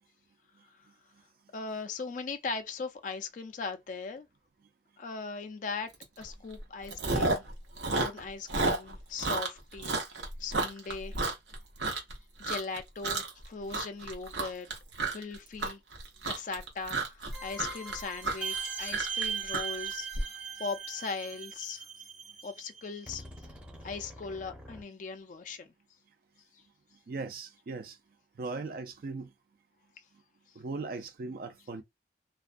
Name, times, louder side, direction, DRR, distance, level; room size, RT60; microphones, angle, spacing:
voice 1, 1.5-4.3 5.0-5.9 6.2-7.5 7.9-11.2 12.4-14.7 15.1-15.8 16.2-21.9 22.4-23.2 23.8-25.7 26.5-26.6, left 4 dB, 45° left, 0.3 m, -39 dB
Chewing mastication, 6.0-6.2 6.5-7.5 7.8-12.1 12.4-12.8 13.0-13.4 13.7-20.2, right 3 dB, 80° right, 0.8 m, -31 dB
sound 1, 17.3-24.8, right 6 dB, 5° right, 0.6 m, -40 dB
voice 2, 27.1-28.0 28.4-29.3 30.6-31.8, right 3 dB, 55° right, 0.4 m, -38 dB
2.3 x 2.1 x 2.4 m
head